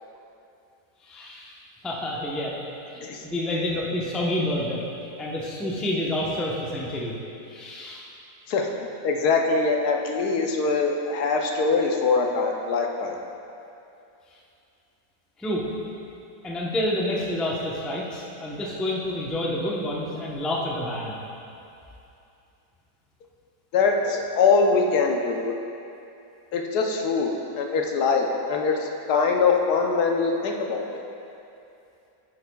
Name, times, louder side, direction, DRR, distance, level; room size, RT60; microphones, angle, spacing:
voice 1, 1.0-1.5 1.8-2.6 2.9-4.8 5.2-7.1 7.5-8.1 15.4-15.7 16.4-21.2, left 1 dB, ahead, -4 dB, 0.4 m, -28 dB
voice 2, 9.0-13.2 23.7-25.5 26.5-30.8, left 4 dB, 75° left, 2 dB, 1.2 m, -23 dB
9.3 x 9.2 x 2.3 m, 2.7 s
omnidirectional pair, 1.7 m